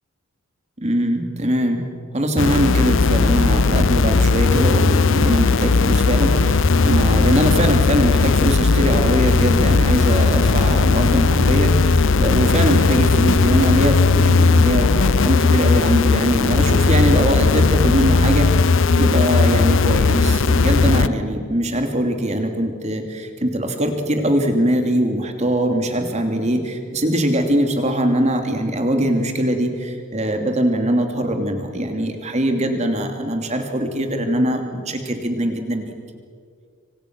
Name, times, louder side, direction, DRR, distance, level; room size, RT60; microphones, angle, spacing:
voice 1, 0.8-1.8 2.1-35.9, right 1 dB, 30° right, 4 dB, 2.8 m, -21 dB
sound 1, 2.4-21.1, left 4 dB, 55° left, 0.6 m, -17 dB
26.5 x 25.0 x 6.2 m, 2.2 s
head